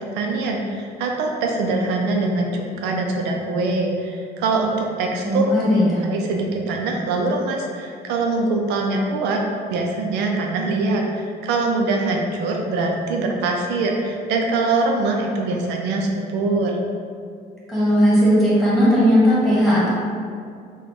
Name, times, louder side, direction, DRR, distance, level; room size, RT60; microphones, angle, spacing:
voice 1, 0.1-5.4 6.0-9.4 9.7-16.8, right 3 dB, 85° right, 1 dB, 0.5 m, -23 dB
voice 2, 5.2-6.0 17.7-19.9, equal, ahead, -9 dB, 1.5 m, -17 dB
3.4 x 2.3 x 3.9 m, 2.2 s
cardioid pair, 110°, 17 cm